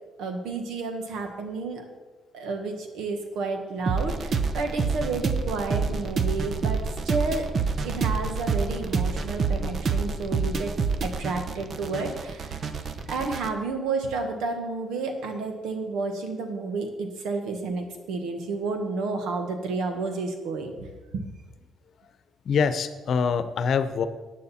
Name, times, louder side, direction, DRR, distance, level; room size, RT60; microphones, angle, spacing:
voice 1, 0.2-1.9 2.3-7.5 7.8-10.7 11.0-12.6 13.1-20.7 21.1-21.2, right 3 dB, 85° right, 5 dB, 1.6 m, -31 dB
sound 1, 3.9-13.5, right 4 dB, 50° right, 0.9 m, -28 dB
voice 2, 22.4-24.1, left 6 dB, 60° left, 11 dB, 0.8 m, -24 dB
14.5 x 9.2 x 4.4 m, 1.3 s
cardioid pair, 90°, 0 cm